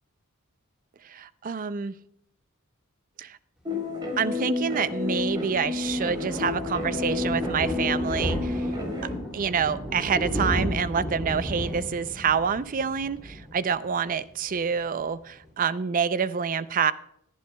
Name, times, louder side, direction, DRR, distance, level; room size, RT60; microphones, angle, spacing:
voice 1, 1.0-1.9 3.2-3.4 4.2-8.7 9.3-16.9, right 6 dB, 40° right, 15 dB, 0.4 m, -27 dB
sound 1, 3.6-9.1, left 3 dB, 20° right, 3.6 m, -30 dB
Thunder, 4.8-14.2 14.5-14.8 15.1-15.2 15.4-15.5, equal, 5° right, 2.6 m, -33 dB
18.5 x 11.5 x 2.2 m, 0.74 s
head